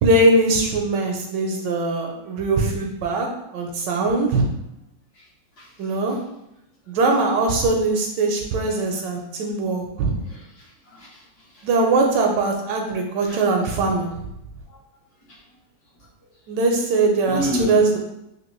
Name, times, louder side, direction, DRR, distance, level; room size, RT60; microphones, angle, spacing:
voice 1, 0.0-3.3 3.5-4.5 5.8-6.2 6.9-10.1 11.6-14.1 16.5-18.0, right 2 dB, 75° right, 2 dB, 1.1 m, -21 dB
voice 2, 10.2-11.2 11.5-11.7 13.3-13.4 14.7-14.8 17.3-17.8, equal, 60° left, -5 dB, 1.3 m, -30 dB
3.5 x 2.7 x 3.0 m, 0.83 s
omnidirectional pair, 2.1 m